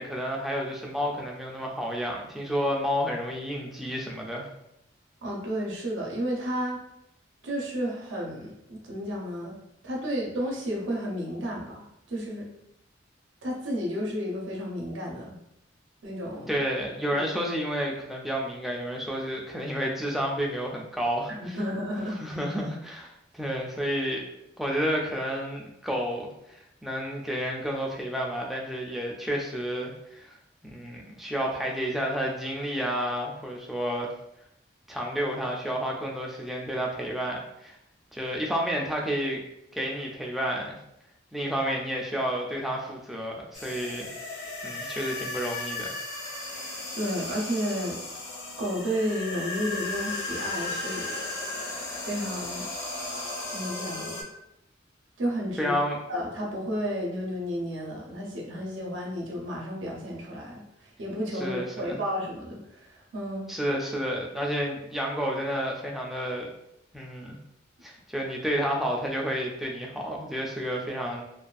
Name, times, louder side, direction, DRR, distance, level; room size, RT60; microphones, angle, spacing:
voice 1, 0.0-4.5 16.5-21.6 22.2-24.2 24.6-30.3 30.6-34.1 34.9-37.8 38.1-39.4 39.7-40.8 41.3-44.1 44.6-46.0 55.6-56.0 61.3-62.0 63.5-66.5 66.9-67.4 67.8-71.2, equal, ahead, -1 dB, 0.3 m, -30 dB
voice 2, 5.2-6.8 7.4-9.6 9.8-12.5 13.4-15.4 16.0-16.5 17.1-17.2 21.4-22.2 46.9-48.1 48.6-51.1 52.1-52.6 53.5-54.1 55.2-55.8 56.1-63.5, equal, 80° right, -2 dB, 0.6 m, -32 dB
sound 1, 43.5-54.2, left 2 dB, 65° left, 0.7 m, -35 dB
2.5 x 2.3 x 2.3 m, 0.82 s
head